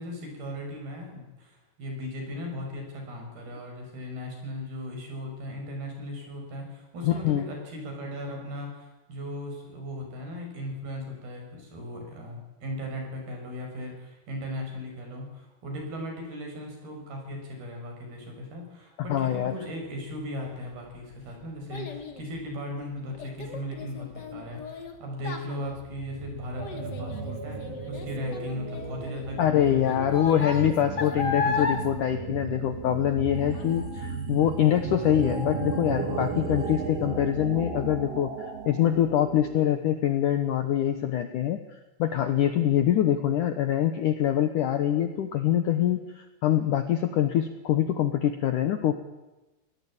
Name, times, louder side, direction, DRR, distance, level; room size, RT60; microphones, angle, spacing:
voice 1, 0.0-27.6 27.9-30.0, left 1 dB, 60° right, 2 dB, 7.7 m, -37 dB
voice 2, 7.0-7.5 19.1-19.5 29.4-38.3 38.7-41.6 42.0-48.9, left 11 dB, 70° left, 8 dB, 2.0 m, -24 dB
Child speech kid speaking, 20.5-33.2 33.5-34.0 34.5-34.6, left 4 dB, 35° left, 1.7 m, -35 dB
sound 1, 25.7-39.8, right 5 dB, 40° right, 2.9 m, -35 dB
sound 2, 33.3-38.7, equal, 5° left, 7.1 m, -46 dB
24.0 x 18.0 x 8.8 m, 1.1 s
omnidirectional pair, 5.0 m